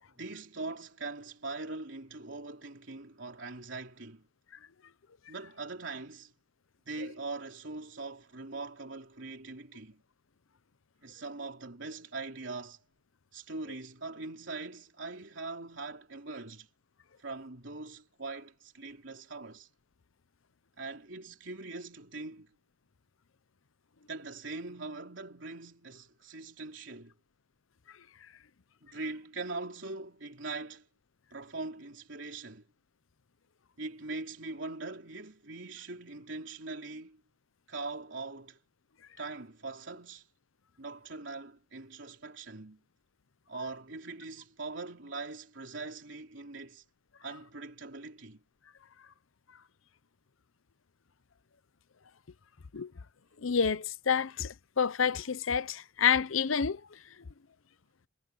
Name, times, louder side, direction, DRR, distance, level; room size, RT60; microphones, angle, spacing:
voice 1, 0.2-4.2 5.3-6.3 6.9-10.0 11.0-12.8 13.3-16.7 17.2-19.7 20.8-22.5 24.1-27.1 28.8-30.9 31.3-32.7 33.8-37.2 37.7-38.6 39.2-40.3 40.8-42.8 43.5-46.8 47.2-48.4, right 3 dB, 65° right, 3.7 m, -42 dB
voice 2, 53.4-56.8, left 6 dB, 85° left, 0.7 m, -28 dB
head